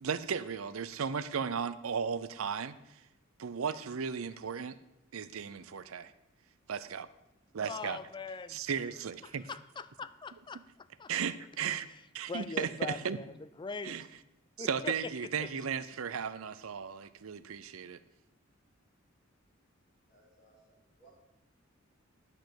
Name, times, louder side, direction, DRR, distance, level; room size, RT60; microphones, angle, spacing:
voice 1, 0.0-2.8 3.4-4.8 5.1-6.1 6.7-7.1 7.5-8.0 8.5-9.4 11.1-11.9 12.1-13.2 13.8-14.0 14.6-18.0, right 6 dB, 85° right, 14 dB, 0.6 m, -35 dB
voice 2, 7.6-8.7 9.2-11.1 11.9-12.0 12.3-14.1 14.6-15.5, left 4 dB, 20° left, 14 dB, 0.4 m, -42 dB
voice 3, 20.1-21.1, right 3 dB, 50° left, -5 dB, 3.5 m, -63 dB
10.5 x 4.5 x 7.8 m, 0.92 s
head